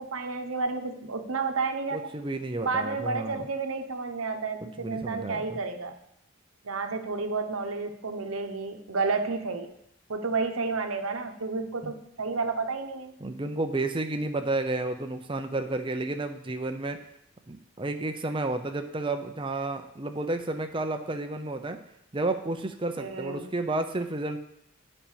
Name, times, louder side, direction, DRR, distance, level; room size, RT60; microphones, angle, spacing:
voice 1, 0.0-2.1 2.6-5.9 6.6-9.7 10.1-13.1 23.0-23.5, right 4 dB, 90° right, 6 dB, 1.0 m, -31 dB
voice 2, 1.9-3.5 4.8-5.6 11.8-11.9 13.2-17.0 17.5-21.8 22.1-24.4, right 2 dB, 25° right, 6 dB, 0.7 m, -31 dB
7.3 x 5.5 x 7.4 m, 0.76 s
head